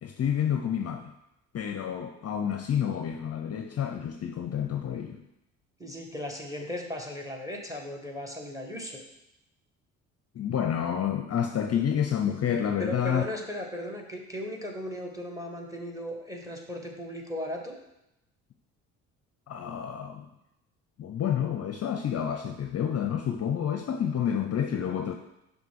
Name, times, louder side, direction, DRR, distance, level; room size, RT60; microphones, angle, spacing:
voice 1, 0.0-1.1 1.5-5.2 10.3-13.2 19.5-20.3 21.0-25.1, left 8 dB, 40° left, 5 dB, 0.6 m, -29 dB
voice 2, 5.8-9.0 12.8-17.8, left 1 dB, 10° right, 2 dB, 1.6 m, -37 dB
6.0 x 3.8 x 5.9 m, 0.87 s
hypercardioid pair, 60°, 40 cm